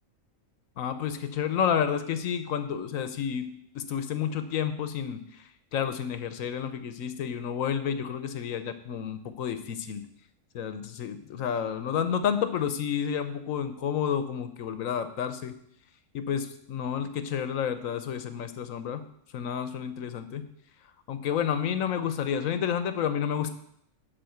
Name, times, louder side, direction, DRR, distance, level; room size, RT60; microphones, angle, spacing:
voice 1, 0.8-3.5 3.7-10.0 10.5-15.5 16.1-19.0 19.3-20.5 21.1-23.5, left 8 dB, 75° left, 11 dB, 1.2 m, -30 dB
11.5 x 4.3 x 7.8 m, 0.71 s
omnidirectional pair, 1.4 m